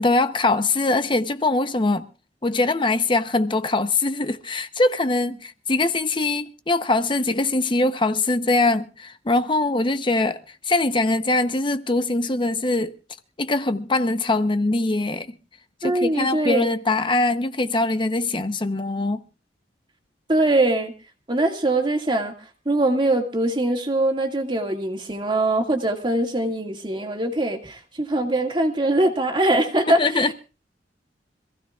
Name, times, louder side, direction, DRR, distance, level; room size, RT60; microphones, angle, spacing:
voice 1, 0.0-2.1 2.4-12.9 13.4-15.4 15.8-19.2 29.9-30.3, left 2 dB, 30° left, 0.8 m, -22 dB
voice 2, 15.8-16.7 20.3-20.9 21.3-22.3 22.7-30.3, right 1 dB, 25° right, 2.0 m, -22 dB
26.0 x 15.5 x 2.4 m
head